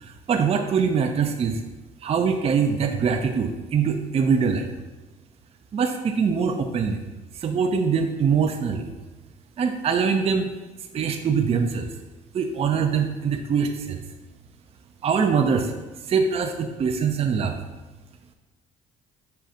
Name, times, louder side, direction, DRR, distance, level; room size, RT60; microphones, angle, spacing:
voice 1, 0.0-1.6 2.0-4.7 5.7-7.0 7.3-8.9 9.6-10.5 10.9-11.9 12.3-14.0 15.0-15.7 16.1-17.6, right 6 dB, 35° right, 4 dB, 0.4 m, -23 dB
5.5 x 2.4 x 3.9 m, 1.1 s
supercardioid pair, 75°, 17 cm